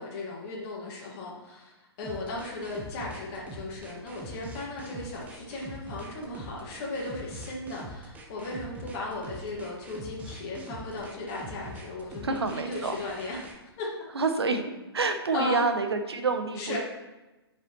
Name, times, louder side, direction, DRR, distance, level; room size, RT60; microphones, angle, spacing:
voice 1, 0.0-1.7 2.0-13.5 13.8-13.9 15.3-15.6 16.6-16.8, left 2 dB, 35° left, -3 dB, 1.7 m, -36 dB
sound 1, 2.0-13.6, right 1 dB, 10° right, 0.9 m, -43 dB
voice 2, 12.2-13.0 14.1-14.6 14.9-16.8, right 4 dB, 70° right, 7 dB, 0.9 m, -28 dB
8.9 x 5.7 x 3.0 m, 1.1 s
figure-of-eight pair, 120°, 14 cm